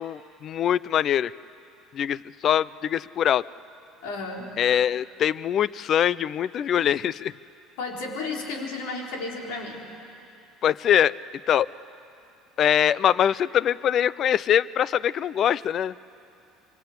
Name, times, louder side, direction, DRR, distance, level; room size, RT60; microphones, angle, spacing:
voice 1, 0.0-1.3 1.9-3.4 4.6-7.3 10.6-11.1 11.5-11.7 12.6-16.0, left 10 dB, 50° left, 21 dB, 0.5 m, -23 dB
voice 2, 4.0-4.5 7.8-9.9, left 3 dB, 70° left, 0 dB, 4.0 m, -33 dB
25.0 x 24.5 x 8.1 m, 2.6 s
hypercardioid pair, 65°, 0 cm